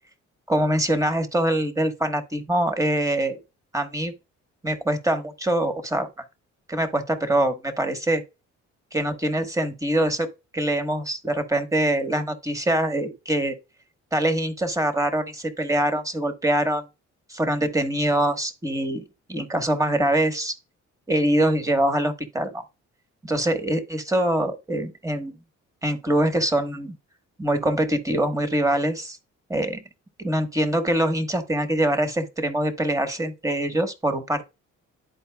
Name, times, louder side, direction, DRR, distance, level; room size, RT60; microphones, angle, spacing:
voice 1, 0.5-3.4 3.7-4.1 4.6-6.1 6.7-8.2 8.9-13.6 14.1-16.8 17.3-19.0 19.3-20.5 21.1-22.6 23.2-25.3 25.8-26.9 27.4-29.2 29.5-29.8 30.2-34.4, right 1 dB, 10° right, 1.2 m, -24 dB
12.0 x 4.3 x 2.2 m
cardioid pair, 90°, 30 cm